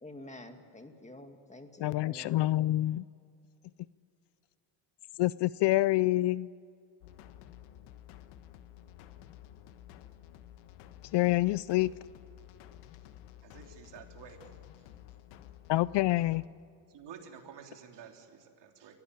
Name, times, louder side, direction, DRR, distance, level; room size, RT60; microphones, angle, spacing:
voice 1, 0.0-2.3, left 1 dB, 15° left, 6 dB, 2.2 m, -48 dB
voice 2, 1.8-3.0 5.2-6.5 11.1-11.9 15.7-16.4, left 17 dB, 55° left, 20 dB, 0.5 m, -27 dB
sound 1, 7.0-16.5, left 12 dB, 85° left, 1.4 m, -52 dB
voice 3, 13.4-14.9 16.9-19.0, right 7 dB, 55° right, 3 dB, 3.4 m, -51 dB
24.0 x 16.5 x 9.0 m, 2.4 s
supercardioid pair, 90°, 50 cm